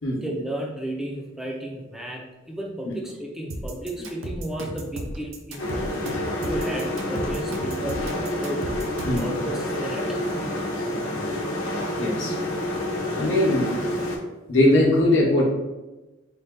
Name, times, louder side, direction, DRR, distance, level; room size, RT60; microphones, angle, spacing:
voice 1, 0.2-5.9 6.4-8.7 9.2-10.2, right 1 dB, ahead, -1 dB, 0.4 m, -33 dB
sound 1, 3.5-9.3, right 1 dB, 70° right, 0.6 m, -34 dB
sound 2, 5.6-14.2, left 1 dB, 90° left, 0.8 m, -28 dB
voice 2, 12.0-12.4 13.2-13.8 14.5-15.4, left 1 dB, 60° left, -4 dB, 0.9 m, -20 dB
3.9 x 2.2 x 3.6 m, 1.1 s
head